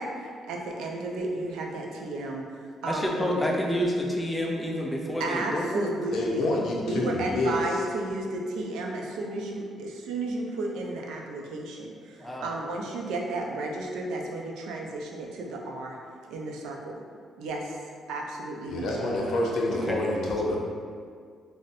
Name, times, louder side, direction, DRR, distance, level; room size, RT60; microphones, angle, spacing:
voice 1, 0.0-3.5 5.2-6.5 6.8-16.0 16.3-17.0 17.4-17.8 18.1-19.0, right 2 dB, 90° right, 0 dB, 0.4 m, -33 dB
voice 2, 2.9-5.9 12.2-12.5 18.8-19.4 19.7-20.0, equal, 10° left, -2 dB, 0.4 m, -29 dB
voice 3, 6.1-7.6 18.7-20.6, left 2 dB, 75° left, -2 dB, 0.5 m, -27 dB
4.0 x 2.0 x 2.5 m, 2.1 s
cardioid pair, 90°, 0 cm